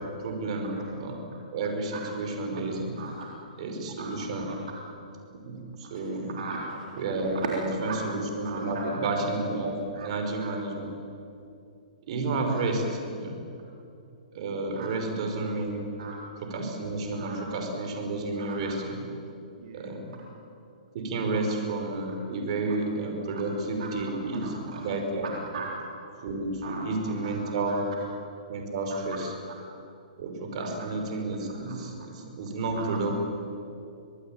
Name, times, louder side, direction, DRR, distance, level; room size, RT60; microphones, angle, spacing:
voice 1, 0.2-1.2 1.5-2.9 3.6-4.5 5.3-6.3 7.0-10.9 12.1-12.8 13.1-13.3 14.3-15.9 16.4-19.0 19.7-20.0 20.9-25.3 26.2-27.9 28.5-29.3 30.2-33.1, right 2 dB, 50° right, 4 dB, 5.6 m, -31 dB
voice 2, 3.0-3.3 4.0-4.1 4.4-4.6 5.8-6.0 6.4-6.8 7.9-8.0 8.4-9.1 9.9-10.1 12.5-12.6 14.8-14.9 16.0-16.2 17.2-17.4 18.4-18.7 19.6-20.0 23.8-23.9 24.4-24.8 25.5-25.7 26.6-26.8 27.2-27.3 27.7-27.8 28.9-29.0 30.6-30.7 31.7-31.8 32.8-32.9, right 5 dB, 70° right, -1 dB, 3.7 m, -39 dB
25.5 x 19.0 x 9.1 m, 2.7 s
hypercardioid pair, 150°, 4 cm